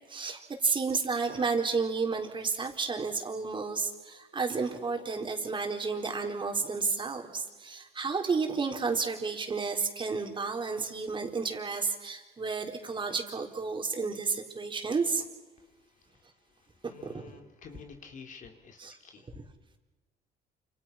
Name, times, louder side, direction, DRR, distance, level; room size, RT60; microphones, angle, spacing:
voice 1, 0.1-15.2 17.0-17.2 18.8-18.9, right 4 dB, 30° right, 3 dB, 4.3 m, -31 dB
voice 2, 15.6-19.4, left 5 dB, 50° left, 5 dB, 3.7 m, -51 dB
29.0 x 28.5 x 6.0 m, 1.2 s
cardioid pair, 110°, 17 cm